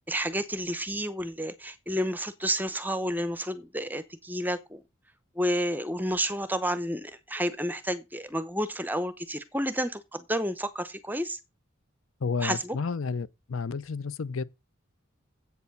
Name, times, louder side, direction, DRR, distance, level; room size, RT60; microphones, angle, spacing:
voice 1, 0.1-4.8 5.3-11.4 12.4-12.8, equal, 10° right, 0.7 m, -30 dB
voice 2, 12.2-14.4, left 5 dB, 70° left, 0.6 m, -31 dB
8.2 x 7.0 x 5.4 m
head